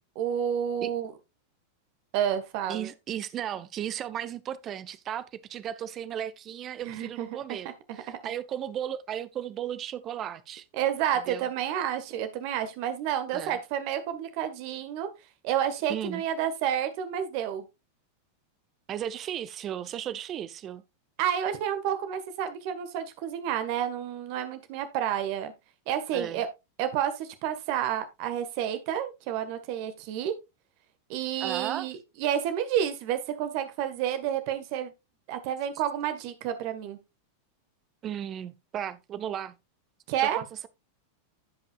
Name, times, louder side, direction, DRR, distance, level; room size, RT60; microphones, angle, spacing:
voice 1, 0.1-1.1 2.1-2.9 6.8-7.3 7.9-8.2 10.8-15.1 15.4-17.6 21.2-25.5 25.9-26.5 26.8-30.3 31.1-34.9 35.3-37.0 40.1-40.4, right 10 dB, 45° right, 1.5 m, -30 dB
voice 2, 2.7-10.6 11.1-11.5 13.3-13.6 15.9-16.2 18.9-20.8 26.1-26.4 31.4-31.9 38.0-39.6 40.4-40.7, right 10 dB, 30° right, 0.8 m, -35 dB
15.5 x 5.5 x 2.4 m
figure-of-eight pair, 90°, 0 cm